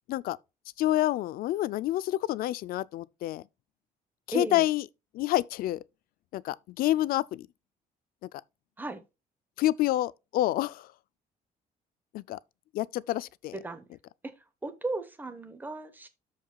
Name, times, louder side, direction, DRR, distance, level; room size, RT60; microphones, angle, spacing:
voice 1, 0.8-3.4 4.3-4.8 5.1-5.8 6.3-7.5 9.6-10.9 12.1-12.4 12.7-13.6, left 15 dB, 75° left, 0.4 m, -28 dB
voice 2, 4.3-4.6 8.8-9.0 13.5-13.8 14.6-16.1, right 2 dB, 10° right, 1.0 m, -35 dB
13.5 x 4.9 x 2.3 m
cardioid pair, 150°, 15 cm